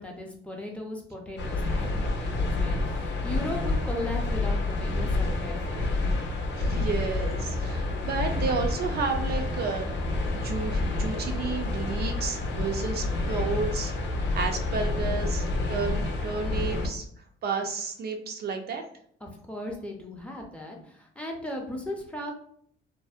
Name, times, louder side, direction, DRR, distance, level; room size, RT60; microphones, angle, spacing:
voice 1, 0.0-6.0 7.4-8.0 19.2-22.3, left 1 dB, 5° left, 0 dB, 0.5 m, -37 dB
sound 1, 1.4-16.9, left 2 dB, 65° left, 0.6 m, -28 dB
voice 2, 6.6-10.0 10.3-17.1 17.4-18.8, right 4 dB, 55° right, 3 dB, 0.4 m, -32 dB
2.6 x 2.0 x 2.4 m, 0.62 s
cardioid pair, 90°, 20 cm